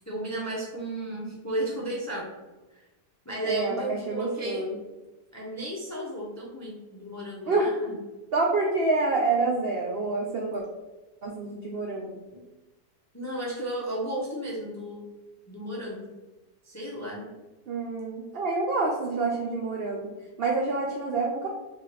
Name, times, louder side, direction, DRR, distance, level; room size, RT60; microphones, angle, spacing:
voice 1, 0.0-2.4 2.7-2.8 3.2-4.8 5.3-7.9 12.3-12.4 13.1-15.0 15.5-16.1 16.6-17.3, right 1 dB, 20° left, -3 dB, 0.4 m, -34 dB
voice 2, 3.4-4.8 7.5-7.7 8.3-10.6 11.2-12.2 17.7-20.1 20.4-21.5, right 3 dB, 75° right, 0 dB, 0.5 m, -27 dB
3.6 x 3.4 x 4.1 m, 1.1 s
omnidirectional pair, 1.8 m